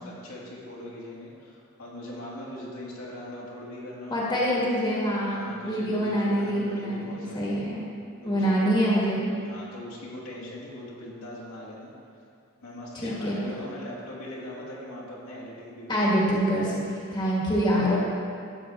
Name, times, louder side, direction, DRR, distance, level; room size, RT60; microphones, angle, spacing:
voice 1, 0.0-4.6 5.3-7.5 8.2-8.9 9.4-11.9 12.6-16.0, left 1 dB, 75° left, -6 dB, 2.4 m, -40 dB
voice 2, 4.1-7.8 8.2-9.3 13.0-13.4 15.9-18.0, equal, 20° left, -5 dB, 1.6 m, -25 dB
12.5 x 7.8 x 3.6 m, 2.4 s
head